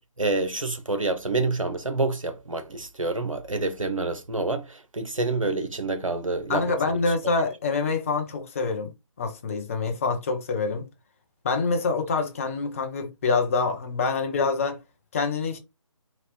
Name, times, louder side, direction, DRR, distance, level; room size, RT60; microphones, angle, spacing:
voice 1, 0.2-7.0, right 2 dB, 80° right, 0.8 m, -27 dB
voice 2, 6.5-8.9 9.2-10.9 11.4-14.8 15.1-15.6, left 4 dB, 25° left, 0.7 m, -26 dB
3.9 x 2.9 x 3.0 m
figure-of-eight pair, 150°, 17 cm